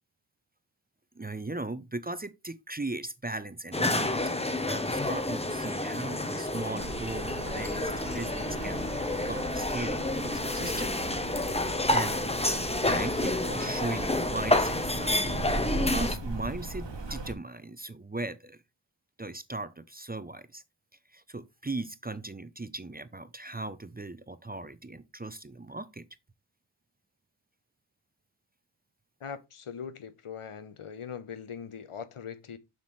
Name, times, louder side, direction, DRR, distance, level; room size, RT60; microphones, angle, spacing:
voice 1, 1.2-8.9 9.2-11.0 11.9-12.3 12.8-15.4 15.8-18.6 19.2-20.6 21.1-26.0, right 2 dB, 20° right, 0.5 m, -38 dB
sound 1, 3.7-16.1, left 2 dB, 10° left, 0.8 m, -29 dB
Rain, 6.8-17.3, right 2 dB, 55° right, 1.3 m, -38 dB
voice 2, 29.2-32.6, left 7 dB, 85° left, 0.9 m, -41 dB
7.4 x 5.7 x 3.1 m
wide cardioid pair, 70°, 50 cm